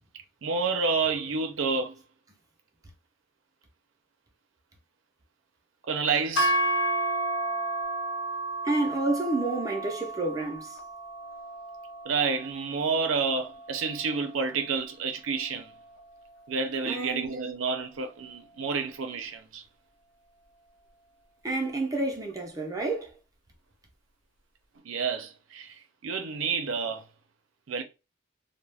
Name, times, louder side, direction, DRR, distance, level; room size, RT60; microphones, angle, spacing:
voice 1, 0.4-2.0 5.9-6.6 12.0-15.7 16.5-19.6 24.8-25.8 26.0-27.1 27.7-27.8, right 4 dB, 80° right, 0.5 m, -29 dB
sound 1, 6.4-14.6, right 2 dB, 60° left, 0.6 m, -32 dB
voice 2, 8.6-10.8 16.9-17.4 21.4-23.1, right 2 dB, 15° right, 0.5 m, -29 dB
2.3 x 2.1 x 3.2 m
head